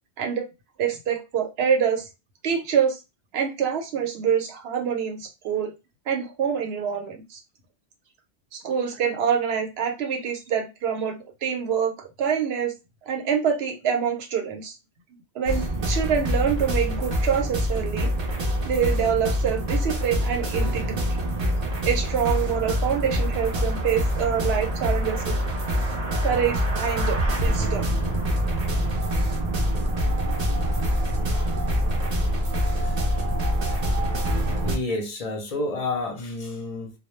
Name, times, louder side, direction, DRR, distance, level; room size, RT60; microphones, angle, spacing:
voice 1, 0.8-2.1 2.4-3.0 3.3-5.7 6.1-7.4 8.5-12.7 13.1-14.8 15.3-18.1 18.6-21.0 21.8-25.4 26.2-27.9 29.1-29.2, right 7 dB, 70° right, 0.9 m, -26 dB
sound 1, 15.5-34.8, equal, 45° right, 0.6 m, -25 dB
voice 2, 34.6-36.9, left 2 dB, 45° left, 0.5 m, -30 dB
2.2 x 2.0 x 3.0 m
omnidirectional pair, 1.1 m